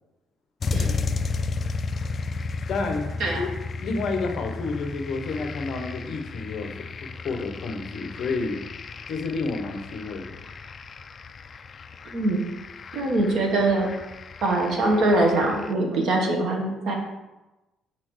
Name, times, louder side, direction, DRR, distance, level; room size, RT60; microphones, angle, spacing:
sound 1, 0.6-15.7, left 4 dB, 30° left, 0.3 m, -34 dB
voice 1, 0.8-1.2 2.7-3.5 3.8-6.7 7.0-8.6 9.1-10.3, left 3 dB, 50° left, 5 dB, 1.0 m, -30 dB
voice 2, 12.1-12.4 12.9-14.0 14.4-16.9, right 2 dB, 50° right, 1 dB, 1.4 m, -23 dB
6.2 x 4.3 x 6.3 m, 1.0 s
cardioid pair, 175°, 0 cm